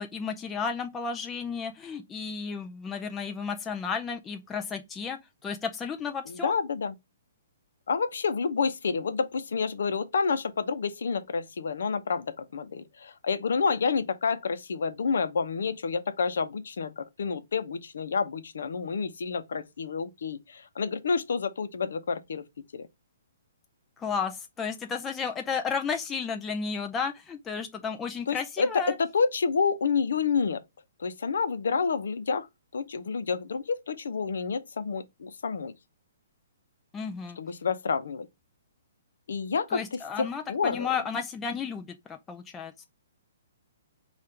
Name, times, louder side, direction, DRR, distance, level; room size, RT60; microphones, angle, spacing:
voice 1, 0.0-6.5 24.0-29.0 36.9-37.4 39.7-42.9, left 5 dB, 10° left, 0.4 m, -33 dB
voice 2, 6.3-6.9 7.9-22.4 22.7-22.9 28.3-30.6 31.0-32.5 32.7-35.7 37.4-38.3 39.3-40.9, left 5 dB, 70° left, 0.7 m, -29 dB
5.1 x 2.4 x 4.3 m
hypercardioid pair, 175°, 0 cm